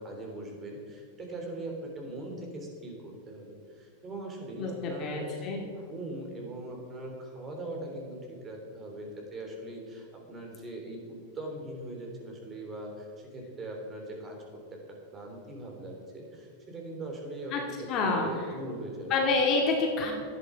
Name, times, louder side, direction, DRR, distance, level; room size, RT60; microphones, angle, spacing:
voice 1, 0.0-14.4 15.1-19.1, right 1 dB, 25° right, 1 dB, 3.4 m, -41 dB
voice 2, 4.6-5.6 17.5-17.6 17.9-18.3 19.1-20.1, left 3 dB, 40° left, 0 dB, 2.3 m, -27 dB
12.0 x 9.9 x 5.1 m, 2.3 s
hypercardioid pair, 120°, 0 cm